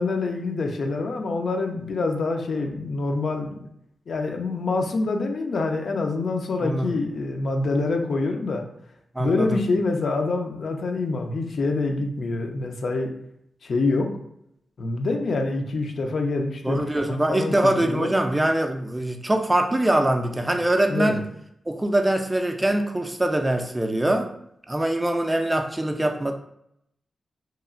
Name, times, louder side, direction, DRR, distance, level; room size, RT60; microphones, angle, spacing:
voice 1, 0.0-3.7 4.1-8.6 9.2-13.1 13.6-14.1 14.8-18.1 20.9-21.2, left 3 dB, 70° left, 3 dB, 0.4 m, -26 dB
voice 2, 6.6-7.0 9.1-9.6 16.6-21.2 21.7-24.3 24.7-26.3, right 1 dB, 15° right, 5 dB, 0.3 m, -23 dB
2.9 x 2.4 x 2.4 m, 0.74 s
cardioid pair, 70°, 0 cm